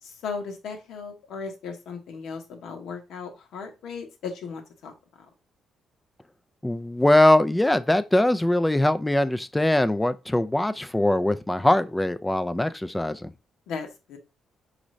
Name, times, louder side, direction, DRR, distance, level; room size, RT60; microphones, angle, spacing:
voice 1, 0.0-4.9 13.7-14.2, left 5 dB, 80° left, 1.0 m, -36 dB
voice 2, 6.6-13.3, left 1 dB, 10° left, 0.4 m, -22 dB
5.0 x 2.6 x 3.1 m
cardioid pair, 90°, 0 cm